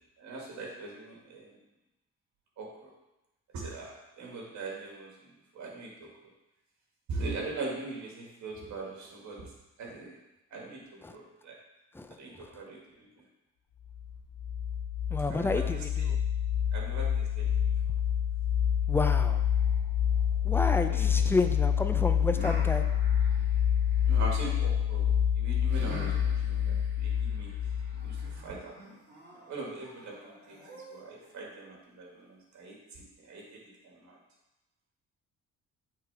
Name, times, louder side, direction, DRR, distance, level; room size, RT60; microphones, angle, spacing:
voice 1, 0.2-1.5 2.6-2.9 3.5-5.1 5.5-6.1 7.1-9.5 9.8-10.2 10.5-10.8 11.1-11.6 12.2-13.1 15.3-15.6 16.7-17.5 20.9-21.1 24.0-27.5 28.0-29.0 29.3-30.6 30.9-33.4 33.8-34.2, right 3 dB, 70° right, -2 dB, 1.9 m, -41 dB
voice 2, 11.9-12.6 15.1-16.2 18.9-19.4 20.4-22.8, left 3 dB, 10° left, 7 dB, 0.4 m, -31 dB
sound 1, 13.9-28.4, left 9 dB, 55° left, 0.7 m, -27 dB
sound 2, 19.1-21.3 22.3-24.4 25.7-31.3, right 1 dB, 35° right, 2.3 m, -47 dB
8.2 x 3.8 x 3.4 m, 0.96 s
cardioid pair, 90°, 30 cm